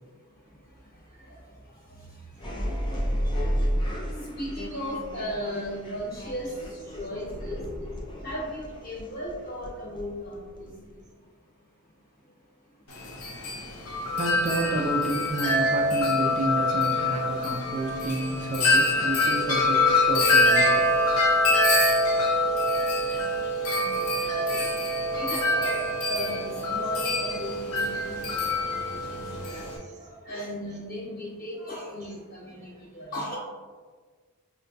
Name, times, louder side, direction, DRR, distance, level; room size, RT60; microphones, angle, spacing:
voice 1, 0.0-11.3 12.1-12.8 22.9-33.4, equal, 45° left, -5 dB, 1.2 m, -38 dB
sound 1, 2.4-11.0, equal, 20° left, 0.5 m, -32 dB
Wind chime, 12.9-29.8, left 1 dB, 80° left, 0.7 m, -25 dB
voice 2, 14.1-20.9 23.4-23.5 25.6-25.7 32.0-32.1, right 2 dB, 35° right, 0 dB, 0.4 m, -31 dB
5.5 x 2.1 x 2.6 m, 1.5 s
head